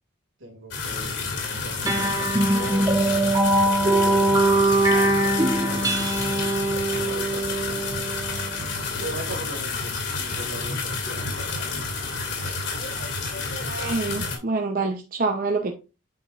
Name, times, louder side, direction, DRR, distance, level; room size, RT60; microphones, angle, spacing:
voice 1, 0.4-3.2 3.8-6.3 6.9-8.6 8.9-11.9 12.4-12.6, right 1 dB, 75° right, 3 dB, 2.1 m, -40 dB
sound 1, 0.7-14.4, left 4 dB, 65° left, 2.5 m, -30 dB
sound 2, 1.8-8.7, right 2 dB, 15° right, 0.8 m, -22 dB
voice 2, 13.6-15.7, right 3 dB, 45° right, 3 dB, 0.7 m, -26 dB
8.5 x 6.0 x 2.5 m, 0.30 s
head